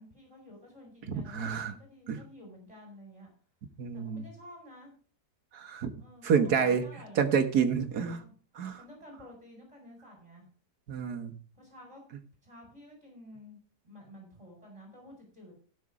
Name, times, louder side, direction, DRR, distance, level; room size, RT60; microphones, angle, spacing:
voice 1, 0.0-3.3 3.9-5.0 6.0-7.3 7.9-8.3 8.8-10.5 11.5-12.0 12.4-13.6 13.8-15.7, left 1 dB, 15° right, 0 dB, 5.0 m, -51 dB
voice 2, 1.1-1.7 2.1-2.2 3.8-4.3 5.5-5.9 6.2-6.8 7.2-8.2 8.6-8.8 10.9-11.4, right 6 dB, 65° right, 7 dB, 1.8 m, -28 dB
16.5 x 6.3 x 4.9 m, 0.41 s
omnidirectional pair, 1.8 m